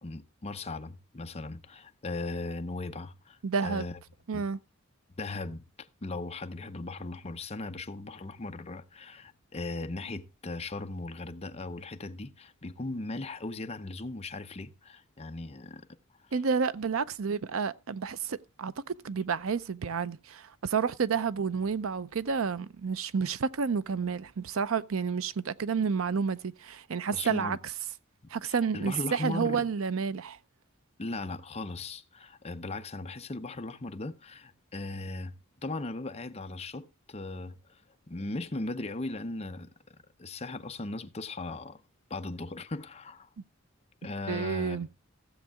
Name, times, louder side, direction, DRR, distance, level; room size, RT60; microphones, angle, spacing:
voice 1, 0.0-3.9 4.3-4.4 5.2-15.9 27.1-27.6 28.5-29.6 31.0-35.3 35.6-37.8 38.1-39.7 40.2-41.8 42.1-43.3 44.0-44.9, left 2 dB, 30° left, 0.7 m, -38 dB
voice 2, 3.4-3.9 4.3-4.6 16.3-18.7 19.0-27.6 28.3-30.4 44.3-44.9, right 5 dB, 75° right, 0.6 m, -30 dB
15.5 x 7.3 x 3.5 m
head